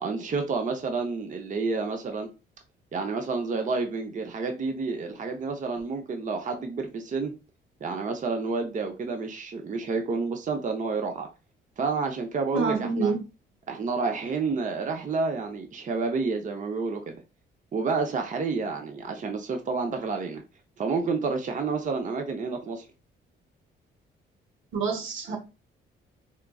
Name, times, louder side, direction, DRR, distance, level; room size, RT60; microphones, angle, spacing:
voice 1, 0.0-2.3 2.9-7.3 7.8-11.3 11.8-13.1 13.7-17.2 17.7-20.4 20.8-22.8, right 4 dB, 40° right, 0.7 m, -29 dB
voice 2, 12.5-13.2 24.7-25.4, right 4 dB, 80° right, 1.0 m, -27 dB
4.4 x 2.5 x 2.3 m
cardioid pair, 90°, 20 cm